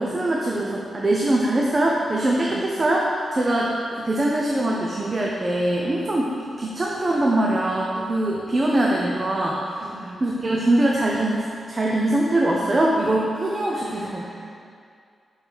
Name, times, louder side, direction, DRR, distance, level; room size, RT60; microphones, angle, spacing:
voice 1, 0.0-9.6 10.2-14.2, right 1 dB, 35° right, -3 dB, 0.6 m, -22 dB
voice 2, 9.8-10.2 13.7-14.5, right 2 dB, 55° right, -3 dB, 1.0 m, -41 dB
6.3 x 4.4 x 3.5 m, 2.2 s
cardioid pair, 80°, 0 cm